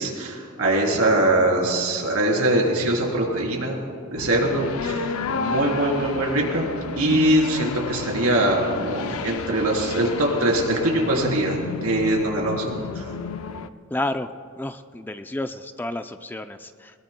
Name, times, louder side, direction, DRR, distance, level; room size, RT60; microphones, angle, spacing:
voice 1, 0.0-6.7 7.0-13.1, right 1 dB, 85° right, -1 dB, 3.6 m, -22 dB
sound 1, 4.2-13.7, left 5 dB, 80° left, 0.5 m, -31 dB
voice 2, 13.9-14.3 14.6-16.9, left 1 dB, 10° left, 9 dB, 0.3 m, -30 dB
22.0 x 20.5 x 2.2 m, 2.2 s
head